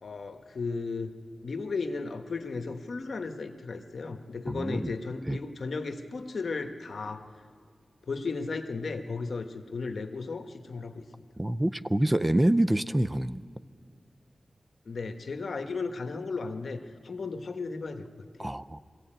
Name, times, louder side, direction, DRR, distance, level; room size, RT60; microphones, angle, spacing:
voice 1, 0.0-1.1 1.4-7.2 8.1-11.2 14.8-18.5, left 4 dB, 70° left, 7 dB, 1.3 m, -35 dB
voice 2, 4.5-4.9 5.3-5.4 11.4-13.4 18.4-18.8, right 1 dB, 15° right, 13 dB, 0.5 m, -26 dB
22.5 x 16.0 x 8.9 m, 2.1 s
wide cardioid pair, 100°, 0 cm